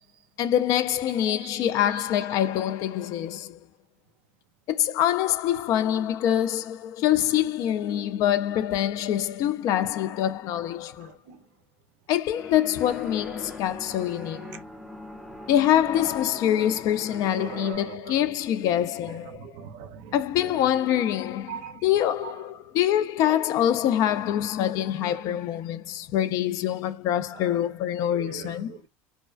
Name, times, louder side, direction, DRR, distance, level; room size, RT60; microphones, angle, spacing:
voice 1, 0.4-3.6 4.7-11.1 12.1-14.6 15.5-19.5 20.1-28.8, left 11 dB, 50° left, 0.4 m, -25 dB
voice 2, 1.9-2.3 5.2-5.3 11.3-11.4 13.9-14.1 15.8-16.2 16.6-16.7 17.2-18.3 18.7-20.7 21.5-21.7 22.2-22.4 23.2-23.5 25.0-25.2 27.3-27.7 28.1-28.9, right 8 dB, 70° right, 0.5 m, -42 dB
sound 1, 12.4-17.7, left 1 dB, 5° right, 0.5 m, -42 dB
2.4 x 2.2 x 2.3 m
supercardioid pair, 130°, 7 cm